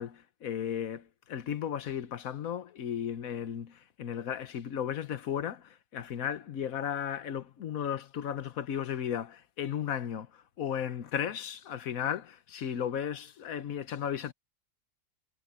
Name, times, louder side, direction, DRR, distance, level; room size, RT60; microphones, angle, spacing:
voice 1, 0.0-14.3, left 9 dB, 85° left, 1.4 m, -35 dB
omnidirectional pair, 1.4 m